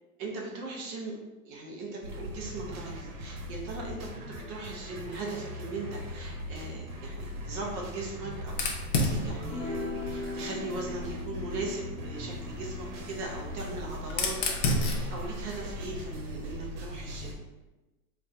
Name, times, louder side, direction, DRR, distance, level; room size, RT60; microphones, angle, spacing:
voice 1, 0.2-1.1 1.4-8.7 9.1-17.3, right 3 dB, 20° right, -1 dB, 0.4 m, -39 dB
sound 1, 2.0-17.3, equal, 75° right, 1.0 m, -40 dB
Fire, 8.5-11.2 12.4-16.6, left 2 dB, 70° left, 0.9 m, -33 dB
sound 2, 9.4-16.0, left 3 dB, 35° left, 0.7 m, -41 dB
4.0 x 2.2 x 3.6 m, 1.1 s
hypercardioid pair, 135°, 44 cm